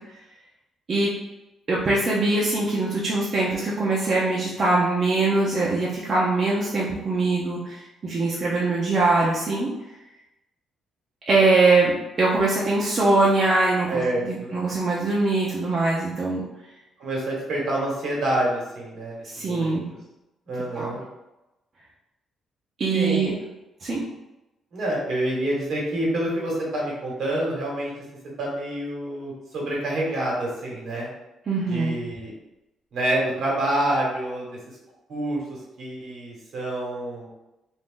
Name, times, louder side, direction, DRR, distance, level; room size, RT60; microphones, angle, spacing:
voice 1, 1.7-9.7 11.3-16.4 19.2-19.9 20.8-20.9 22.8-23.3 23.8-24.0 31.5-32.0, right 3 dB, 45° right, -5 dB, 0.6 m, -22 dB
voice 2, 13.9-14.5 17.0-19.8 20.5-21.0 22.9-23.3 24.7-27.9 28.4-31.1 31.7-32.3 32.9-34.6 35.1-37.3, right 1 dB, 70° right, -4 dB, 1.3 m, -27 dB
2.6 x 2.5 x 3.7 m, 0.96 s
cardioid pair, 90°, 0 cm